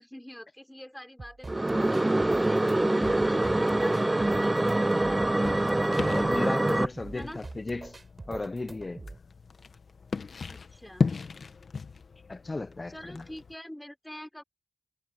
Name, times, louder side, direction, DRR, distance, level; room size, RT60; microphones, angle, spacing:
voice 1, 0.0-5.5 7.1-7.4 10.5-11.1 12.9-14.4, equal, 10° left, 5.5 m, -46 dB
sound 1, 1.2-9.2, right 3 dB, 40° right, 4.2 m, -44 dB
sound 2, 1.5-6.9, right 1 dB, 25° right, 0.7 m, -25 dB
sound 3, 3.0-13.5, left 5 dB, 65° left, 1.5 m, -38 dB
voice 2, 6.1-7.9 8.3-9.0 12.3-13.2, left 2 dB, 35° left, 1.0 m, -35 dB
cardioid pair, 45°, 0 cm